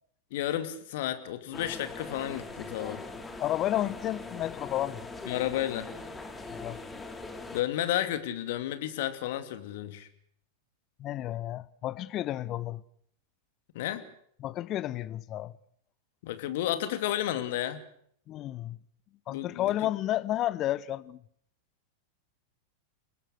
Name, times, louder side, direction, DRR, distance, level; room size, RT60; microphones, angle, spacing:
voice 1, 0.3-3.0 5.2-5.9 7.5-10.1 13.7-14.0 16.2-17.9 19.3-19.7, left 12 dB, 50° left, 2.6 m, -32 dB
sound 1, 1.5-7.6, left 3 dB, 10° left, 3.0 m, -41 dB
voice 2, 3.4-5.1 6.5-6.8 11.0-12.8 14.4-15.5 18.3-18.8 19.3-21.2, left 13 dB, 35° left, 0.9 m, -31 dB
29.5 x 19.5 x 6.5 m
figure-of-eight pair, 90°, 0 cm